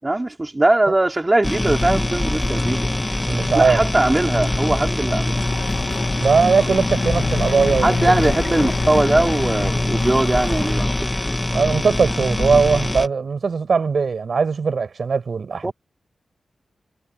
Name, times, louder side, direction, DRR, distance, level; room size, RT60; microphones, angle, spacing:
voice 1, 0.0-2.9 3.5-5.4 7.8-10.9 15.6-15.7, right 2 dB, 15° right, 4.1 m, -20 dB
sound 1, 1.4-13.1, left 1 dB, 10° left, 1.7 m, -23 dB
voice 2, 3.3-3.8 6.2-8.3 11.5-15.7, right 5 dB, 50° right, 7.8 m, -20 dB
Chatter / Car passing by / Motorcycle, 5.3-10.7, left 5 dB, 60° left, 2.8 m, -30 dB
wide cardioid pair, 175°, 0 cm